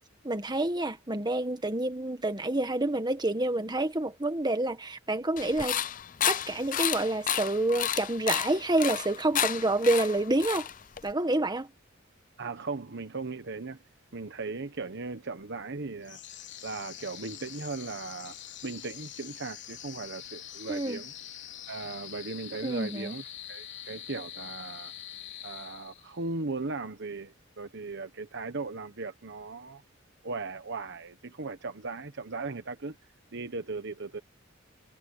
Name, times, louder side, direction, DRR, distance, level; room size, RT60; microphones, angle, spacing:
voice 1, 0.2-5.8 6.3-10.7 11.0-11.7 20.7-21.0 22.6-23.1, right 2 dB, 20° right, 1.7 m, -28 dB
sound 1, 5.4-11.1, left 10 dB, 40° left, 0.6 m, -31 dB
voice 2, 12.4-13.8 14.1-16.2 16.6-18.4 18.6-21.1 21.7-24.9 25.4-29.8 30.2-33.0 33.3-34.2, right 3 dB, 60° right, 1.1 m, -37 dB
sound 2, 16.0-26.3, left 11 dB, 60° left, 3.9 m, -44 dB
head